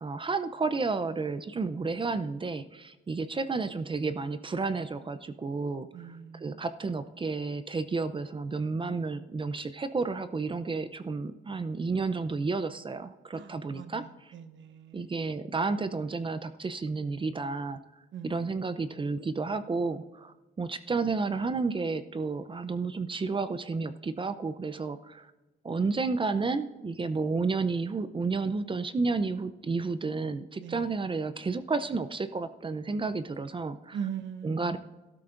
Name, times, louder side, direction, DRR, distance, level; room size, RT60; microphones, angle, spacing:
voice 1, 0.0-14.3 14.9-17.8 18.2-25.3 25.6-34.0 34.4-34.8, right 4 dB, 25° right, 12 dB, 0.6 m, -31 dB
voice 2, 5.9-6.6 13.3-15.1 18.1-18.5 30.6-30.8 33.9-34.8, right 8 dB, 70° right, 10 dB, 0.9 m, -40 dB
14.5 x 12.5 x 2.6 m, 1.1 s
cardioid pair, 90°, 20 cm